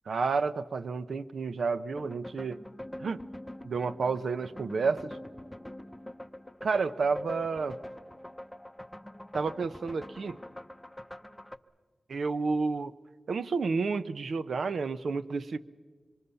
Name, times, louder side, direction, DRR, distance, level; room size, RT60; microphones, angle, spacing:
voice 1, 0.1-2.6 3.0-3.2 3.6-5.2 6.6-7.8 9.3-10.4 12.1-12.9 13.3-15.6, right 4 dB, 80° right, 13 dB, 0.7 m, -30 dB
sound 1, 2.0-11.6, left 1 dB, 5° left, 0.7 m, -44 dB
25.5 x 24.0 x 7.0 m, 1.5 s
wide cardioid pair, 90°, 0 cm